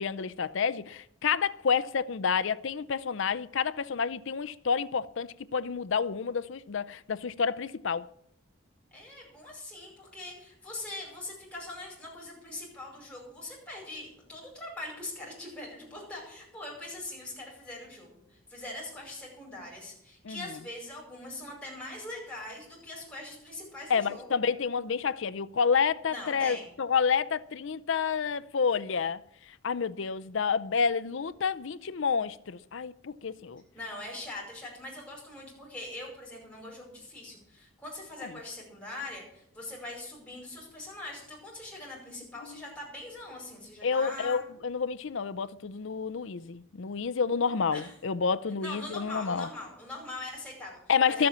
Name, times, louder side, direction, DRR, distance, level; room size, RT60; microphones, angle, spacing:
voice 1, 0.0-8.1 20.2-20.4 23.9-29.2 29.6-33.6 43.8-49.5 50.9-51.3, left 6 dB, 65° left, 0.5 m, -29 dB
voice 2, 8.9-24.4 26.1-26.6 33.7-44.4 47.7-47.9 48.6-50.8 51.0-51.3, left 2 dB, 5° left, 5.1 m, -42 dB
12.5 x 7.7 x 8.4 m
head